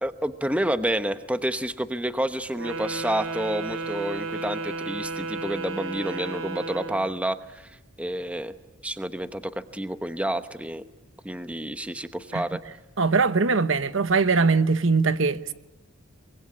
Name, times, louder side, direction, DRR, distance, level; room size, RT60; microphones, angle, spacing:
voice 1, 0.0-7.7 8.0-8.5 8.8-10.9 11.2-12.6, right 1 dB, 5° right, 0.9 m, -29 dB
Wind instrument woodwind instrument, 2.5-7.1, right 3 dB, 80° right, 2.8 m, -33 dB
voice 2, 13.0-15.5, right 4 dB, 60° right, 1.0 m, -21 dB
24.0 x 22.5 x 9.9 m
head